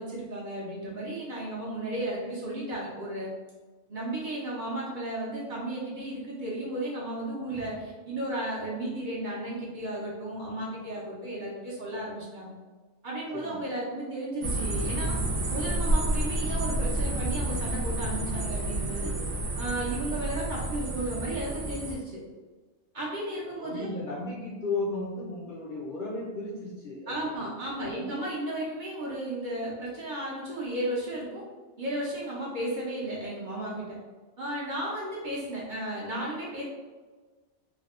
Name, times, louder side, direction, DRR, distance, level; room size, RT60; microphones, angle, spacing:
voice 1, 0.0-3.3 3.9-12.5 13.0-15.2 15.5-19.1 19.6-22.1 22.9-24.0 27.1-31.4 31.8-34.0 34.4-36.6, right 1 dB, 50° right, -6 dB, 0.7 m, -34 dB
sound 1, 14.4-21.9, right 1 dB, 80° right, 0.9 m, -30 dB
voice 2, 23.6-27.1 27.7-28.1, left 2 dB, 55° left, -5 dB, 0.6 m, -35 dB
3.4 x 2.2 x 2.4 m, 1.3 s
omnidirectional pair, 1.2 m